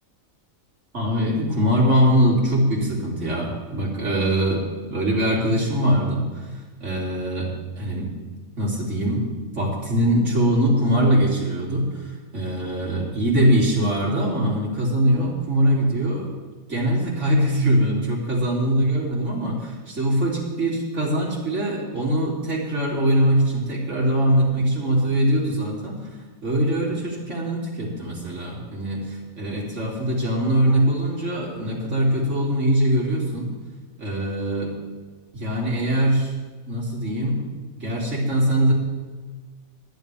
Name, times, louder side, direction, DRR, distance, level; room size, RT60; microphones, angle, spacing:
voice 1, 0.9-4.6 4.9-6.5 6.8-7.5 7.8-8.1 8.6-9.3 9.5-16.4 16.7-26.0 26.4-33.5 34.0-34.7 35.3-36.3 36.7-37.4 37.8-38.7, right 1 dB, 55° right, -5 dB, 3.5 m, -22 dB
20.5 x 10.0 x 3.5 m, 1.3 s
omnidirectional pair, 1.5 m